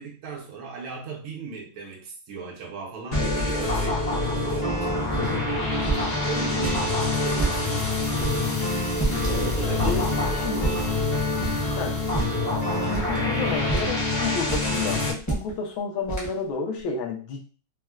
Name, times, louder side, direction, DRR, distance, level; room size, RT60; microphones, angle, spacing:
voice 1, 0.0-5.2 6.2-7.7 9.4-10.5, right 4 dB, 75° right, -1 dB, 1.5 m, -37 dB
sound 1, 3.1-15.1, left 2 dB, 45° left, 0.8 m, -26 dB
sound 2, 5.1-5.3 5.8-6.1 6.6-6.8 7.3-7.6 8.2-8.4 9.0-9.3 9.8-10.1 10.6-10.9 11.4-11.7 12.1-12.5 12.9-13.2 13.7-14.1 14.5-14.8 15.2-15.5 16.1-16.3, right 3 dB, 20° left, 0.4 m, -28 dB
voice 2, 9.9-10.7 11.8-12.0 12.8-17.4, left 5 dB, 75° left, 2 dB, 1.4 m, -31 dB
4.2 x 2.1 x 2.3 m, 0.38 s
omnidirectional pair, 2.3 m